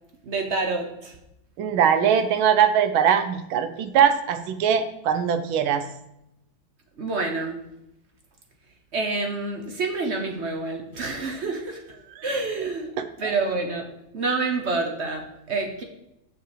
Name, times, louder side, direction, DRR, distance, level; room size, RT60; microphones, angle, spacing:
voice 1, 0.2-1.2 7.0-7.6 8.9-11.8 12.2-12.9 13.2-13.8 14.1-15.8, right 3 dB, 50° right, 3 dB, 0.9 m, -27 dB
voice 2, 1.6-5.8 12.2-12.3 13.2-13.3, right 8 dB, 85° right, 9 dB, 1.6 m, -21 dB
6.7 x 6.1 x 4.9 m, 0.84 s
omnidirectional pair, 2.2 m